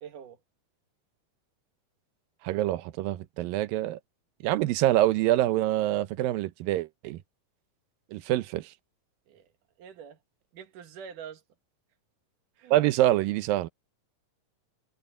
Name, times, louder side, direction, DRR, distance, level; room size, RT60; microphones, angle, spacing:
voice 1, 0.0-0.4 9.3-9.5 9.8-10.2 10.5-11.4 12.6-12.8, right 7 dB, 65° right, 3.2 m, -45 dB
voice 2, 2.4-4.0 4.4-7.2 8.1-8.7 12.7-13.7, right 14 dB, 85° right, 2.5 m, -25 dB
omnidirectional pair, 4.0 m